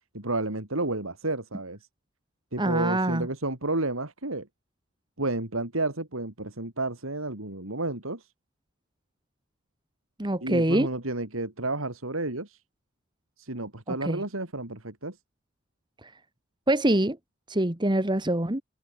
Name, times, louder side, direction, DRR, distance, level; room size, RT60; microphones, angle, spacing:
voice 1, 0.1-1.8 2.5-4.5 5.2-8.3 10.4-12.6 13.4-15.2, right 2 dB, 85° right, 3.7 m, -31 dB
voice 2, 2.6-3.3 10.2-10.9 14.1-14.2 16.7-17.2 17.5-18.6, right 1 dB, 20° right, 1.8 m, -24 dB
head